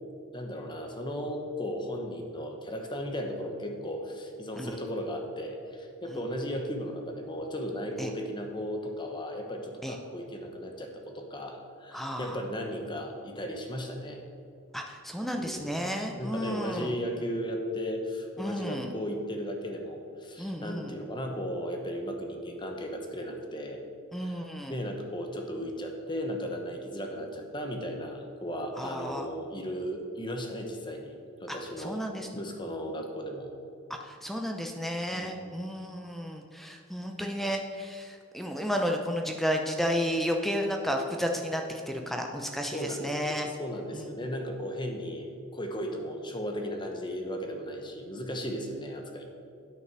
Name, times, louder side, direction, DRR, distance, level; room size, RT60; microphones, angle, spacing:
voice 1, 0.3-14.2 15.3-15.8 16.2-23.8 24.2-24.4 24.7-31.2 31.4-32.0 32.3-33.5 35.1-35.5 42.7-49.2, equal, 20° left, 3 dB, 1.0 m, -36 dB
voice 2, 11.9-12.4 14.7-17.0 18.4-18.9 20.4-21.0 24.1-24.8 28.8-29.3 31.8-32.3 33.9-43.5 43.9-44.1, equal, ahead, 3 dB, 0.5 m, -32 dB
9.2 x 6.5 x 6.0 m, 2.4 s
head